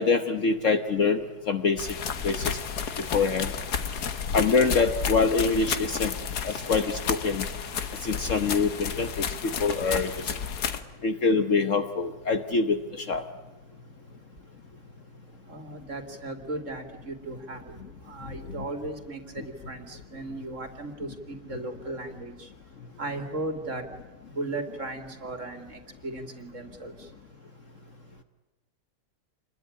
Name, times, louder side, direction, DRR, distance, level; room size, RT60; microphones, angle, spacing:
voice 1, 0.0-1.9 2.2-2.6 3.0-3.5 4.3-6.1 6.4-7.5 8.0-10.3 11.0-13.2, left 4 dB, 55° left, 7 dB, 1.4 m, -25 dB
sound 1, 1.8-10.8, left 7 dB, 75° left, 1.8 m, -32 dB
voice 2, 15.5-17.7 18.0-22.5 23.0-23.8 24.3-26.9, right 2 dB, 50° right, 5 dB, 3.0 m, -36 dB
27.5 x 21.0 x 9.8 m, 1.1 s
omnidirectional pair, 1.7 m